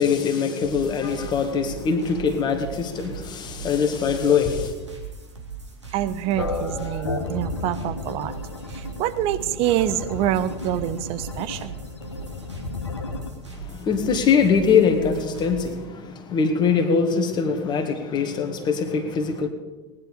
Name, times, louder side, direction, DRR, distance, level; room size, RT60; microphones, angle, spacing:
voice 1, 0.0-4.7 13.5-19.5, left 6 dB, 30° left, 6 dB, 1.9 m, -22 dB
sound 1, 0.6-15.8, right 5 dB, 85° right, 2.5 m, -40 dB
voice 2, 5.9-8.3 8.7-11.7, right 12 dB, 40° right, 12 dB, 0.9 m, -26 dB
sound 2, 6.4-13.3, left 3 dB, 75° left, 1.7 m, -33 dB
19.0 x 10.5 x 5.0 m, 1.2 s
figure-of-eight pair, 85°, 15 cm